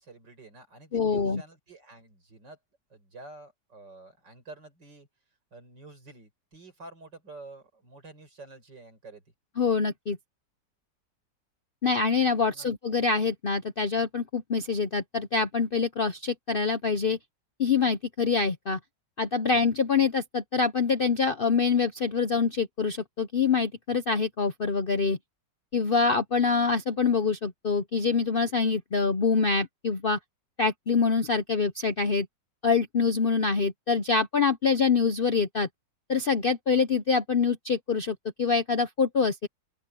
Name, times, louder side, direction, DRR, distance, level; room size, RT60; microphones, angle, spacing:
voice 1, 0.0-2.6 2.9-5.1 5.5-9.2 12.4-12.7, right 2 dB, 75° right, 6.9 m, -49 dB
voice 2, 0.9-1.4 9.6-10.2 11.8-17.2 17.6-18.8 19.2-25.2 25.7-30.2 30.6-32.3 32.6-35.7 36.1-39.5, left 5 dB, 50° left, 0.7 m, -25 dB
open air
omnidirectional pair, 1.9 m